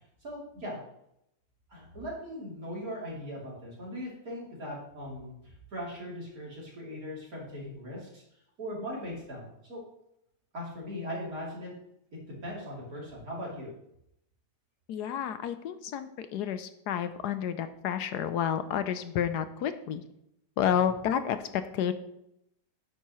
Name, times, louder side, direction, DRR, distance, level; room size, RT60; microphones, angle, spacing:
voice 1, 0.2-0.8 1.7-8.2 8.6-9.8 10.5-11.7 12.4-13.7 20.6-21.0, equal, 55° right, -4 dB, 3.7 m, -39 dB
voice 2, 14.9-20.0 20.6-21.9, left 9 dB, 70° left, 11 dB, 1.2 m, -30 dB
10.0 x 8.5 x 3.2 m, 0.79 s
omnidirectional pair, 1.9 m